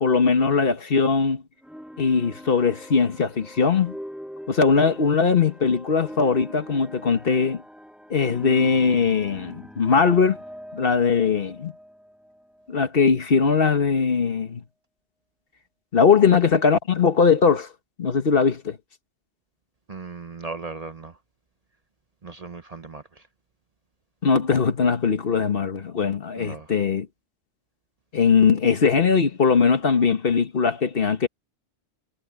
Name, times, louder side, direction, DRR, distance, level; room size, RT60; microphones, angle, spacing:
voice 1, 0.0-1.4 2.0-3.9 4.5-7.6 8.1-10.4 10.7-11.7 12.7-14.6 15.9-17.7 18.0-18.8 24.2-27.1 28.1-31.3, left 5 dB, 55° left, 1.4 m, -20 dB
sound 1, 1.6-12.9, equal, ahead, 2.6 m, -42 dB
voice 2, 19.9-21.2 22.2-23.2 26.3-26.7, right 4 dB, 35° right, 0.9 m, -37 dB
omnidirectional pair, 1.2 m